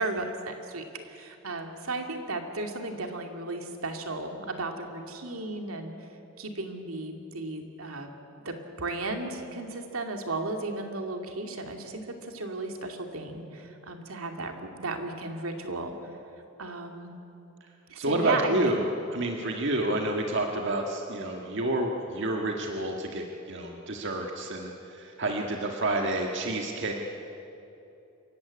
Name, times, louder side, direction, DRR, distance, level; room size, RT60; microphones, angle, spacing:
voice 1, 0.0-5.9 6.4-8.1 8.4-15.9 16.6-17.1 17.9-18.8, right 2 dB, 80° right, 4 dB, 2.5 m, -35 dB
voice 2, 18.0-18.8 19.1-26.9, right 1 dB, 60° right, 2 dB, 1.7 m, -29 dB
26.5 x 15.5 x 9.7 m, 2.9 s
head